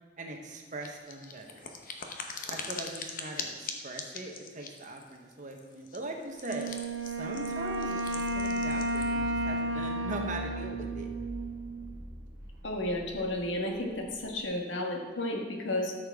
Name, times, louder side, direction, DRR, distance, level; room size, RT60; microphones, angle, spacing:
voice 1, 0.2-1.7 2.5-6.7 7.0-11.1, right 2 dB, 45° right, 2 dB, 1.1 m, -40 dB
sound 1, 0.8-9.1, left 5 dB, 50° left, 0.9 m, -42 dB
sound 2, 6.4-14.4, equal, 10° right, 1.6 m, -45 dB
Wind instrument woodwind instrument, 6.4-11.9, right 1 dB, 85° right, 0.8 m, -33 dB
voice 2, 12.6-16.0, left 1 dB, 85° left, 1 dB, 1.5 m, -32 dB
13.0 x 6.7 x 3.6 m, 1.5 s
head